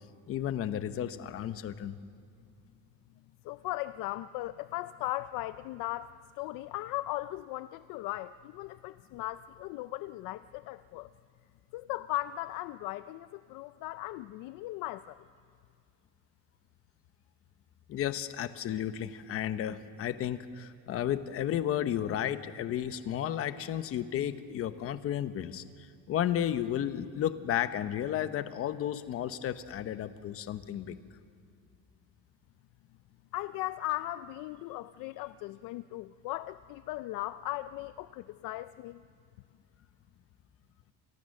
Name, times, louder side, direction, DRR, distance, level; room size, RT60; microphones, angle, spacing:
voice 1, 0.3-2.0 17.9-31.0, left 10 dB, 35° left, 11 dB, 1.0 m, -33 dB
voice 2, 3.4-11.1 11.7-15.2 33.3-39.0, left 16 dB, 60° left, 13 dB, 0.6 m, -38 dB
29.0 x 27.0 x 6.5 m, 2.2 s
cardioid pair, 170°, 38 cm